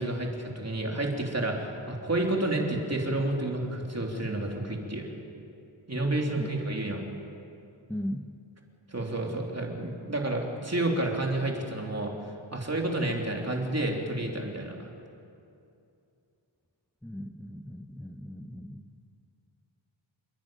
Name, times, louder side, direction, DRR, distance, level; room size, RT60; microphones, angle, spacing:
voice 1, 0.0-5.1 5.9-7.0 8.9-12.1 12.5-14.9, right 1 dB, 30° right, 0 dB, 3.2 m, -30 dB
voice 2, 7.9-8.3 17.0-18.9, equal, 5° left, 5 dB, 0.8 m, -37 dB
28.5 x 10.5 x 9.1 m, 2.6 s
wide cardioid pair, 70°, 48 cm